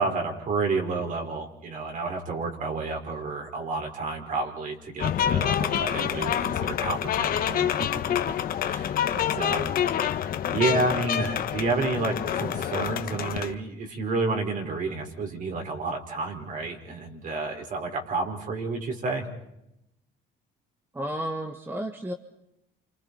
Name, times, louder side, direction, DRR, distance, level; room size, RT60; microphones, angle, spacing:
voice 1, 0.0-7.9 8.3-8.4 8.6-9.7 10.5-19.2, right 3 dB, 50° right, 3 dB, 5.0 m, -30 dB
sound 1, 5.0-13.5, left 10 dB, 60° left, 1.2 m, -27 dB
voice 2, 20.9-22.1, right 1 dB, 15° right, 5 dB, 1.5 m, -32 dB
29.5 x 27.0 x 4.2 m, 0.85 s
cardioid pair, 110°, 17 cm